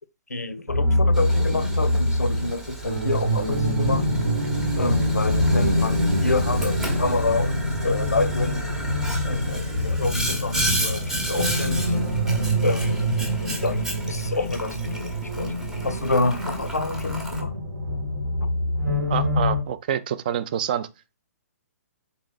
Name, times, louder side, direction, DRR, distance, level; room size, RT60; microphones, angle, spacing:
voice 1, 0.3-4.0 4.8-8.6 9.2-12.0 12.6-13.2 13.6-15.6 15.8-17.5 18.4-18.5, left 3 dB, 75° left, 0.5 m, -28 dB
sound 1, 0.7-19.6, left 1 dB, 65° right, 1.1 m, -25 dB
Boiling, 1.1-17.4, right 1 dB, 5° right, 0.8 m, -32 dB
voice 2, 19.1-20.9, right 9 dB, 30° right, 0.3 m, -27 dB
3.9 x 2.9 x 3.7 m
figure-of-eight pair, 125°, 9 cm